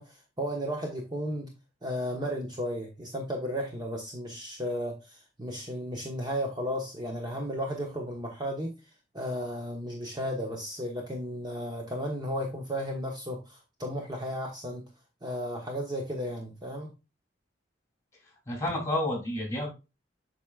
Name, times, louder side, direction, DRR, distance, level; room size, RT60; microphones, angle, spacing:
voice 1, 0.0-1.5 1.8-8.7 9.1-14.8 15.2-16.9, equal, 25° right, 1 dB, 1.2 m, -34 dB
voice 2, 18.5-19.7, left 1 dB, 15° left, 0 dB, 3.2 m, -30 dB
8.2 x 6.0 x 2.4 m, 0.26 s
head